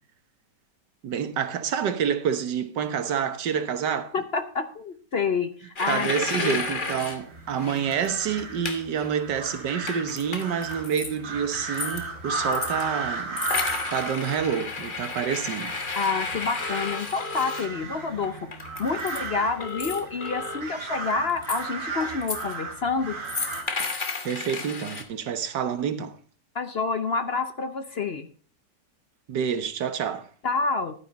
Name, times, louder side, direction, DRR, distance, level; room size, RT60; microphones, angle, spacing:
voice 1, 1.0-4.1 5.9-13.5 13.9-15.8 24.2-26.2 29.3-30.3, right 8 dB, 90° right, 1.7 m, -28 dB
voice 2, 4.1-6.6 15.9-18.5 18.8-23.2 26.5-28.3 30.4-30.9, left 4 dB, 50° left, 0.8 m, -28 dB
sound 1, 5.7-7.2 7.6-8.1 8.4-9.1 9.4-11.1 11.5-12.8 13.4-17.7 18.2-19.3 19.6-20.4 20.8-21.6 22.0-22.5 23.2-25.0, left 4 dB, 30° left, 1.4 m, -32 dB
sound 2, 6.2-23.6, right 3 dB, 50° right, 2.5 m, -36 dB
Telephone, 16.6-17.6 19.6-20.6, left 4 dB, 90° left, 2.2 m, -35 dB
12.0 x 9.7 x 4.1 m
omnidirectional pair, 1.8 m